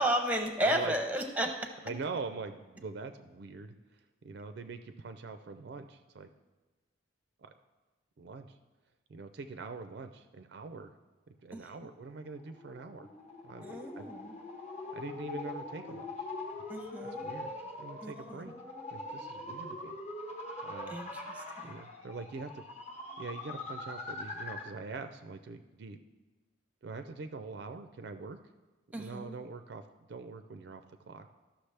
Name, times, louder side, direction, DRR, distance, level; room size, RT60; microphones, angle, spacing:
voice 1, 0.0-1.5 11.5-11.6 13.6-14.3 16.7-17.3 18.0-18.4 20.9-21.8 28.9-29.4, right 1 dB, 10° right, 5 dB, 0.6 m, -33 dB
voice 2, 0.6-1.0 1.8-4.0 4.2-6.3 7.4-7.5 8.2-8.6 9.1-10.9 11.3-13.1 13.4-14.1 14.9-16.3 17.0-17.5 17.8-18.5 18.9-20.0 20.6-21.0 21.6-22.6 23.2-26.0 26.8-28.4 28.9-31.3, right 4 dB, 55° right, 9 dB, 0.3 m, -43 dB
sound 1, 12.1-24.8, left 2 dB, 35° left, 1.0 m, -43 dB
13.5 x 5.9 x 3.3 m, 1.2 s
head